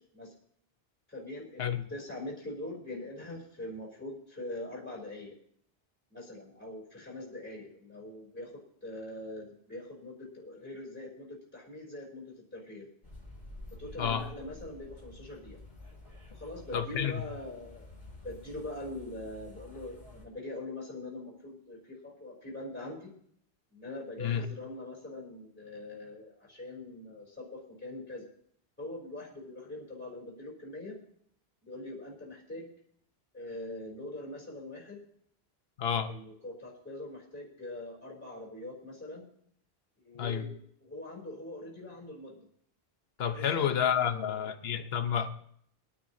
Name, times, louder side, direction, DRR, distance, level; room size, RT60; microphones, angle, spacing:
voice 1, 1.1-5.3 6.1-8.5 8.8-12.9 13.8-15.6 16.3-17.9 18.2-23.1 23.7-28.3 28.8-31.0 31.6-32.7 33.3-35.0 36.0-39.2 40.0-42.4 43.3-44.5, left 1 dB, 10° left, 3.3 m, -43 dB
sound 1, 13.0-20.2, left 2 dB, 45° left, 3.0 m, -50 dB
voice 2, 16.7-17.3 24.2-24.5 35.8-36.1 40.2-40.5 43.2-45.3, left 8 dB, 75° left, 1.1 m, -30 dB
23.0 x 9.7 x 2.7 m
omnidirectional pair, 1.0 m